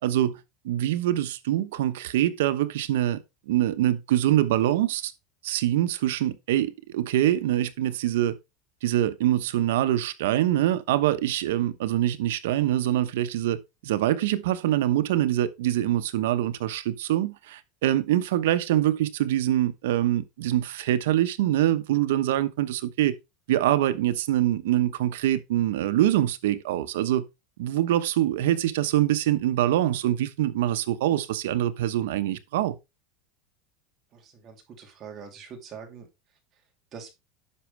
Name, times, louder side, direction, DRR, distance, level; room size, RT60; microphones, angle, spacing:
voice 1, 0.0-3.2 3.5-5.1 5.4-8.3 8.8-13.6 13.8-23.1 23.5-27.3 27.6-32.8, right 13 dB, 85° right, 0.9 m, -24 dB
voice 2, 34.1-36.1 36.9-37.1, right 6 dB, 30° right, 2.7 m, -43 dB
10.0 x 6.2 x 3.3 m
supercardioid pair, 150°, 0 cm